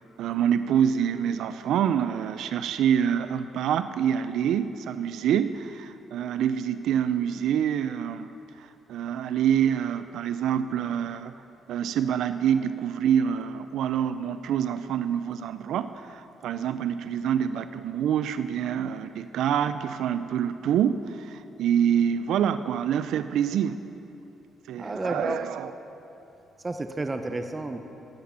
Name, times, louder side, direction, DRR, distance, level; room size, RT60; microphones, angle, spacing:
voice 1, 0.2-8.3 8.6-11.3 11.7-23.8 24.7-25.7, right 9 dB, 80° right, 12 dB, 0.3 m, -26 dB
voice 2, 24.8-25.5 26.6-27.8, right 2 dB, 25° right, 6 dB, 0.6 m, -31 dB
12.0 x 8.4 x 5.6 m, 2.9 s
cardioid pair, 90°, 0 cm